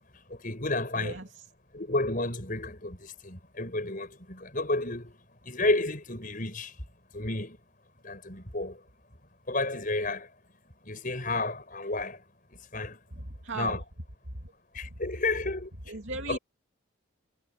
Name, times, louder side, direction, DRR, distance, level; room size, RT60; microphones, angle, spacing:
voice 1, 0.3-1.2 1.7-5.2 5.4-6.7 7.1-7.6 8.0-8.8 9.5-10.3 10.8-12.2 12.7-13.0 13.5-13.8 14.7-15.7 16.3-16.4, left 2 dB, 40° left, 6.5 m, -31 dB
voice 2, 0.9-1.4 13.1-13.8 14.4-14.5 15.9-16.4, right 2 dB, 65° right, 2.7 m, -37 dB
head